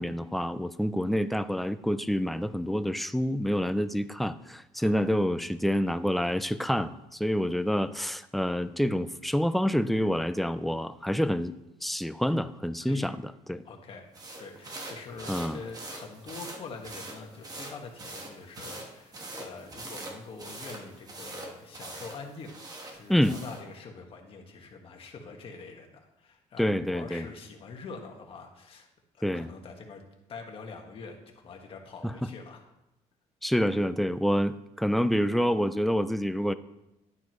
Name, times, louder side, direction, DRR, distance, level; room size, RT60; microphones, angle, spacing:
voice 1, 0.0-11.5 11.8-13.6 15.3-15.6 23.1-23.4 26.6-27.3 29.2-29.5 32.0-32.1 33.4-36.5, equal, ahead, 12 dB, 0.4 m, -27 dB
voice 2, 4.8-5.2 12.8-13.2 13.6-14.1 14.4-28.9 29.1-30.0 30.3-31.2 31.4-32.6 34.3-34.4, left 4 dB, 45° left, 2 dB, 1.8 m, -45 dB
sound 1, 14.1-23.7, right 2 dB, 30° right, 1.5 m, -43 dB
11.5 x 9.6 x 3.2 m, 0.90 s
cardioid pair, 130°, 13 cm